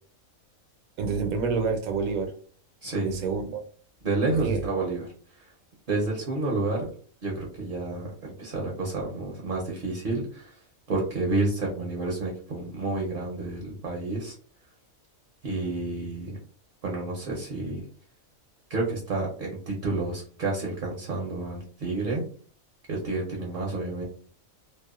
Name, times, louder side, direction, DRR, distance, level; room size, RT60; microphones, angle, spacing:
voice 1, 1.0-2.3 3.0-3.6 4.4-4.6, right 5 dB, 80° right, 4 dB, 1.1 m, -28 dB
voice 2, 2.8-3.2 4.0-5.1 5.4-5.5 5.9-6.9 7.2-10.6 10.9-14.3 15.4-16.4 16.8-17.9 18.7-22.2 22.9-24.0, right 2 dB, 50° right, -2 dB, 0.6 m, -30 dB
2.7 x 2.1 x 2.3 m, 0.43 s
omnidirectional pair, 1.4 m